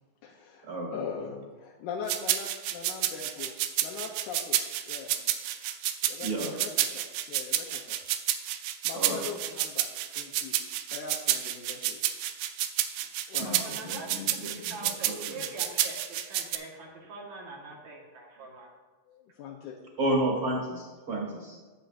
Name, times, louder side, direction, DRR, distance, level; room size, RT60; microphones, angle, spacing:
voice 1, 0.2-3.5 3.8-4.6 4.9-5.1 6.1-8.0 8.8-9.9 10.1-10.6 10.9-12.0 13.3-13.6 19.1-19.8, left 6 dB, 75° left, -1 dB, 1.9 m, -41 dB
sound 1, 2.1-16.6, right 12 dB, 85° right, 2.3 m, -30 dB
voice 2, 6.2-6.5 8.9-9.2 13.4-15.1 20.0-21.6, right 1 dB, 40° right, -2 dB, 2.1 m, -32 dB
voice 3, 13.6-18.7, right 2 dB, 60° right, -1 dB, 2.5 m, -43 dB
14.0 x 7.6 x 2.5 m, 1.3 s
omnidirectional pair, 4.1 m